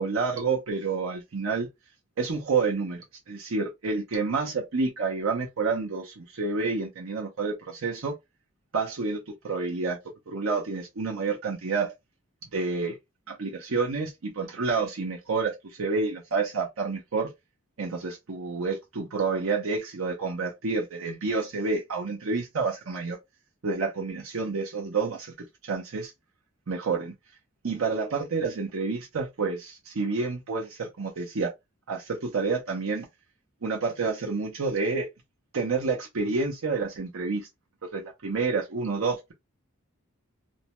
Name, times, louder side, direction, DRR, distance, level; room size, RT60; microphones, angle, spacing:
voice 1, 0.0-1.7 2.2-8.1 8.7-10.0 10.3-11.9 12.5-13.0 13.3-17.3 17.8-23.2 23.6-26.1 26.7-27.1 27.6-31.5 31.9-33.1 33.6-35.1 35.5-37.5 37.9-39.3, right 4 dB, 65° right, 0.6 m, -29 dB
2.6 x 2.1 x 2.9 m
head